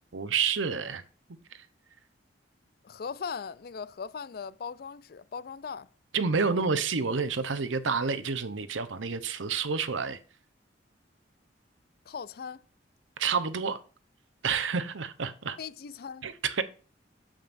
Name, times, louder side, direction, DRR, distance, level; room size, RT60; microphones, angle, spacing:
voice 1, 0.1-1.0 6.1-10.2 13.2-13.8 14.4-15.6 16.2-16.6, right 5 dB, 90° right, 0.8 m, -29 dB
voice 2, 2.8-5.9 12.1-12.6 15.6-16.3, left 6 dB, 50° left, 0.4 m, -39 dB
8.8 x 7.6 x 2.6 m
head